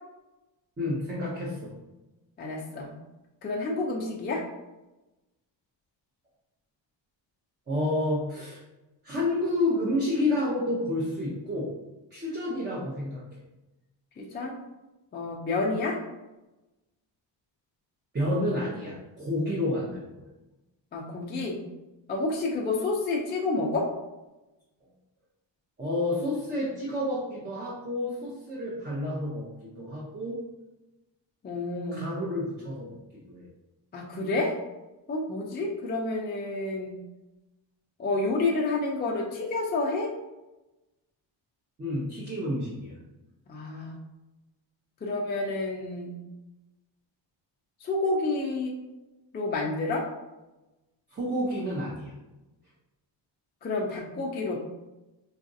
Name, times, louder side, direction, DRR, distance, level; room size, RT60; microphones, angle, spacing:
voice 1, 0.8-1.7 7.7-8.6 9.0-11.7 12.1-13.2 18.1-20.2 25.8-30.4 31.9-33.0 33.3-33.5 41.8-43.0 51.1-52.1, left 1 dB, 20° right, -6 dB, 0.6 m, -30 dB
voice 2, 2.4-2.9 3.4-4.4 14.2-14.6 15.1-16.0 20.9-21.6 22.1-23.9 31.4-32.0 33.9-34.5 35.1-37.0 38.0-40.1 43.5-44.0 45.0-46.1 47.8-48.7 49.3-50.0 53.6-54.6, left 2 dB, 25° left, -1 dB, 0.3 m, -29 dB
3.9 x 2.4 x 2.6 m, 1.0 s
cardioid pair, 145°, 46 cm